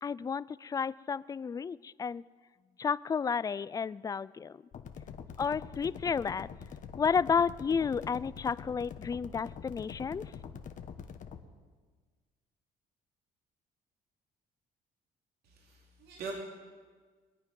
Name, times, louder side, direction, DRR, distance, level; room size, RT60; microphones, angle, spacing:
voice 1, 0.0-2.2 2.8-4.6 5.4-6.5 7.0-10.3, left 6 dB, 20° left, 18 dB, 0.3 m, -32 dB
sound 1, 4.7-11.4, left 7 dB, 50° left, 1.1 m, -45 dB
voice 2, 15.6-16.3, right 5 dB, 70° right, -1 dB, 2.7 m, -42 dB
21.5 x 9.6 x 5.4 m, 1.5 s
cardioid pair, 110°, 17 cm